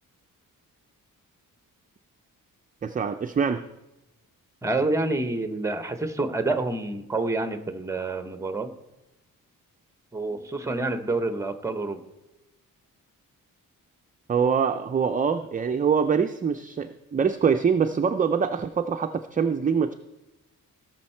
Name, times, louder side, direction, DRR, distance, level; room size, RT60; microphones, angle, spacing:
voice 1, 2.8-3.6 14.3-19.9, right 6 dB, 25° right, 7 dB, 0.4 m, -24 dB
voice 2, 4.6-8.7 10.1-12.0, right 2 dB, 10° right, 9 dB, 0.7 m, -28 dB
17.5 x 6.4 x 4.4 m, 0.98 s
wide cardioid pair, 140°, 34 cm